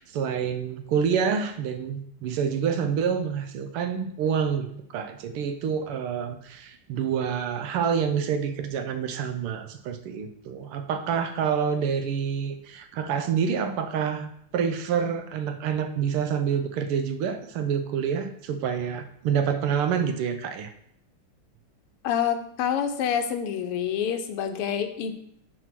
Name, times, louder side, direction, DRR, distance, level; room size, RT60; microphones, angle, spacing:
voice 1, 0.0-20.7, right 7 dB, 80° right, 8 dB, 1.7 m, -27 dB
voice 2, 22.0-25.1, left 8 dB, 85° left, 7 dB, 1.8 m, -27 dB
9.1 x 4.3 x 6.0 m, 0.71 s
omnidirectional pair, 2.4 m